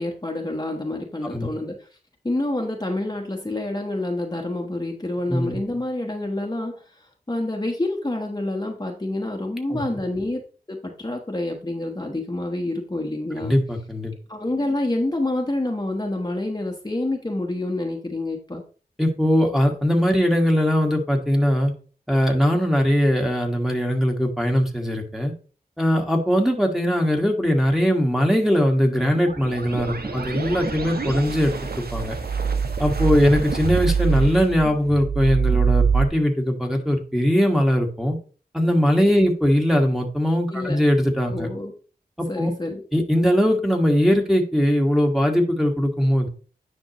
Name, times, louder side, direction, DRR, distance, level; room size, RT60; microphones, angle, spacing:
voice 1, 0.0-1.9 2.2-10.4 10.7-13.5 14.3-18.6 39.1-39.3 40.5-40.8 41.3-41.7 42.3-42.8, left 2 dB, 25° left, 1 dB, 1.2 m, -28 dB
voice 2, 13.3-14.1 19.0-21.7 22.1-25.3 25.8-32.1 32.8-38.2 38.5-41.5 42.4-42.5 42.9-46.3, equal, ahead, 1 dB, 1.7 m, -20 dB
sound 1, 29.2-36.0, right 5 dB, 70° right, 1.0 m, -24 dB
9.9 x 5.4 x 3.0 m, 0.39 s
wide cardioid pair, 55°, 17 cm